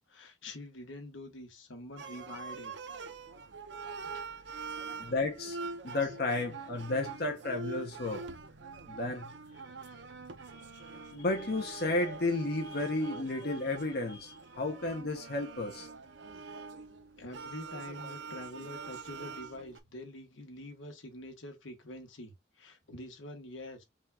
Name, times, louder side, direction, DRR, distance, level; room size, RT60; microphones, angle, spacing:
voice 1, 0.1-2.7 3.9-4.9 6.0-6.2 17.2-23.8, left 1 dB, 90° left, 1.4 m, -46 dB
sound 1, 2.0-19.8, right 4 dB, 65° right, 0.7 m, -44 dB
voice 2, 5.0-5.6 5.8-8.3 8.9-9.3 10.5-15.9, left 2 dB, 55° left, 1.0 m, -33 dB
5.4 x 2.5 x 3.3 m
head